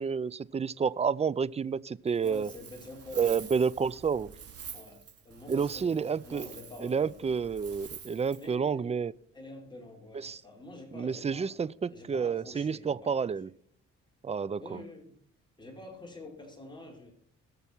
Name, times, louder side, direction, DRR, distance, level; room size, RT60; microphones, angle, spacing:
voice 1, 0.0-2.5 3.2-4.3 5.5-6.5 6.8-9.1 10.2-10.4 10.9-13.5 14.2-14.8, right 6 dB, 20° right, 0.4 m, -30 dB
Wind, 2.1-8.5, right 7 dB, 50° right, 3.1 m, -47 dB
voice 2, 2.2-3.5 4.7-7.4 8.4-9.0 9.3-13.4 14.6-15.2 15.6-17.1, left 2 dB, 15° left, 4.8 m, -47 dB
20.5 x 6.9 x 4.5 m
cardioid pair, 90°, 30 cm